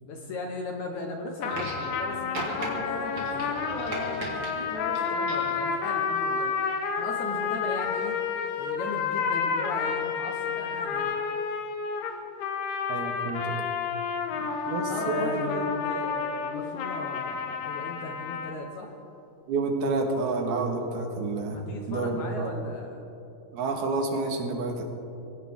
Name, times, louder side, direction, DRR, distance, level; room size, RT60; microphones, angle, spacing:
voice 1, 0.0-6.5 7.0-8.1 8.6-11.2 14.3-14.5 14.9-19.0 20.8-20.9 21.5-23.2 24.8-24.9, left 2 dB, 65° left, 2 dB, 2.0 m, -38 dB
sound 1, 1.4-18.6, left 6 dB, 80° left, 3.1 m, -30 dB
sound 2, 1.5-2.0 2.3-2.7 3.1-4.5 5.0-5.6 6.6-6.7, right 1 dB, 35° right, 3.2 m, -36 dB
voice 2, 12.9-13.7 14.7-15.5 19.5-21.6 21.9-22.5 23.5-24.8, right 3 dB, 80° right, 3 dB, 3.5 m, -29 dB
24.0 x 16.5 x 3.6 m, 2.8 s
omnidirectional pair, 4.5 m